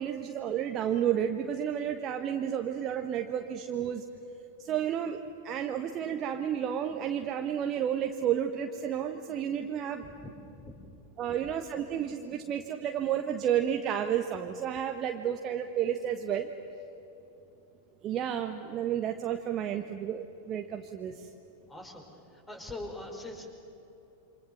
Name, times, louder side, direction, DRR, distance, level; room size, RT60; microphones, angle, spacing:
voice 1, 0.0-4.0 4.6-5.2 5.4-10.0 11.2-16.5 18.0-21.3, right 9 dB, 30° right, 5 dB, 1.3 m, -31 dB
voice 2, 10.0-10.8 21.7-22.1 22.3-23.5, left 2 dB, 10° left, 3 dB, 4.9 m, -42 dB
28.0 x 26.0 x 7.3 m, 3.0 s
figure-of-eight pair, 90°, 0 cm